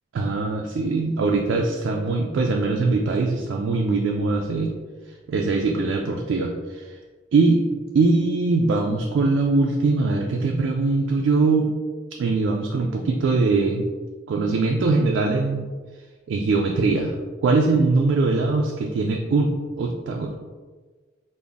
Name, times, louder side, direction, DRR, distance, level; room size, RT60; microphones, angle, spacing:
voice 1, 0.1-4.7 5.3-7.0 7.3-7.6 7.9-11.7 12.2-13.9 14.3-15.7 16.3-17.1 17.4-20.4, right 3 dB, 70° right, 1 dB, 0.3 m, -22 dB
3.4 x 2.0 x 3.8 m, 1.4 s
head